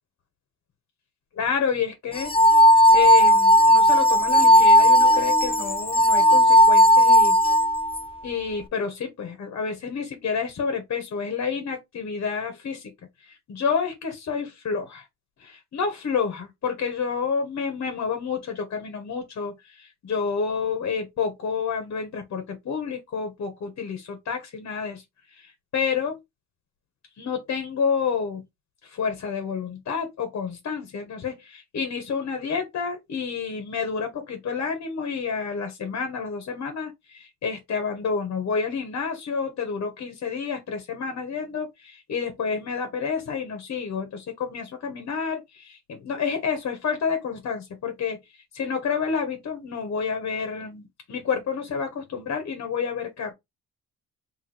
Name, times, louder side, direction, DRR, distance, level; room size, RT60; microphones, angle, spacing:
voice 1, 1.3-2.3 2.9-7.4 8.2-12.9 13.2-15.1 15.4-26.2 27.2-28.4 28.8-53.3, left 6 dB, 55° left, 1.5 m, -29 dB
sound 1, 2.2-8.0, equal, 20° left, 0.5 m, -16 dB
3.5 x 3.1 x 4.3 m
cardioid pair, 90°, 30 cm